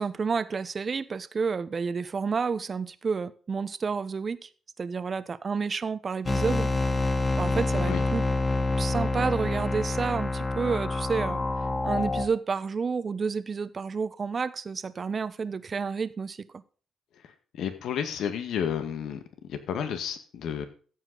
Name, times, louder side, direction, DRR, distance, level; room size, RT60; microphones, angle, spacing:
voice 1, 0.0-4.5 4.8-6.7 7.4-8.3 8.8-11.4 11.8-16.6, right 5 dB, 40° right, 1.0 m, -30 dB
sound 1, 6.2-12.2, left 2 dB, 30° left, 2.0 m, -27 dB
voice 2, 17.6-19.2 19.5-20.7, left 8 dB, 75° left, 1.9 m, -31 dB
14.5 x 8.4 x 4.0 m
cardioid pair, 90°, 0 cm